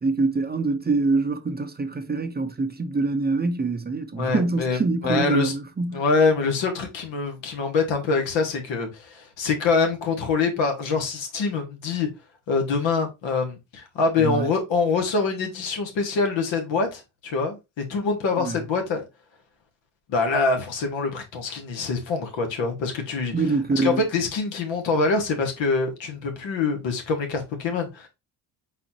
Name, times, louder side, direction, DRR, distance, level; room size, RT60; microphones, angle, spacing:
voice 1, 0.0-6.0 14.2-14.5 18.3-18.6 23.3-24.0, right 3 dB, 20° right, 0.7 m, -25 dB
voice 2, 4.2-4.8 5.0-5.5 5.9-12.1 12.5-19.1 20.1-23.3 23.8-28.1, left 4 dB, 80° left, 1.4 m, -25 dB
4.1 x 4.1 x 2.8 m
supercardioid pair, 65°, 45 cm